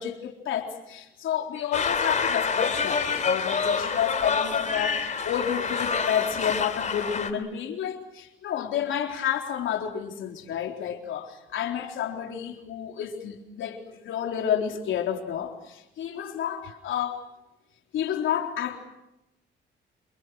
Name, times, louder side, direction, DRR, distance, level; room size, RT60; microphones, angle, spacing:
voice 1, 0.0-17.2 17.9-18.8, left 9 dB, 80° left, 3.9 m, -30 dB
sound 1, 1.7-7.3, left 5 dB, 40° left, 3.1 m, -27 dB
29.0 x 27.5 x 6.3 m
cardioid pair, 90°, 20 cm